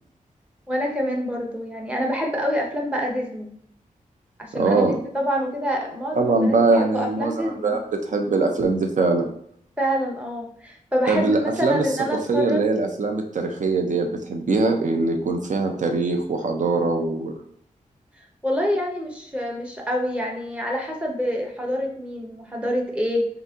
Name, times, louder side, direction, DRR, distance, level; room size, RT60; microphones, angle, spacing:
voice 1, 0.7-3.5 4.4-7.8 9.8-12.7 18.4-23.3, equal, 10° right, 0 dB, 0.9 m, -26 dB
voice 2, 4.6-5.0 6.1-9.3 11.1-11.8 12.3-17.4, right 3 dB, 60° right, 3 dB, 0.7 m, -22 dB
4.0 x 2.8 x 3.6 m, 0.65 s
wide cardioid pair, 115°, 14 cm